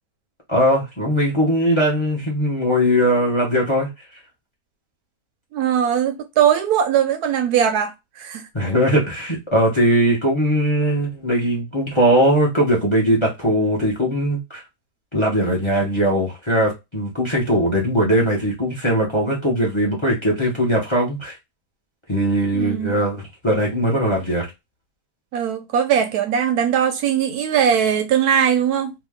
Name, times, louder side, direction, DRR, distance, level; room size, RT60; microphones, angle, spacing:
voice 1, 0.5-3.9 8.5-14.6 15.1-21.4 22.1-24.5, equal, 25° left, 0.7 m, -20 dB
voice 2, 5.5-8.5 22.5-23.0 25.3-28.9, right 8 dB, 75° right, 1.0 m, -20 dB
2.9 x 2.4 x 3.5 m
omnidirectional pair, 1.8 m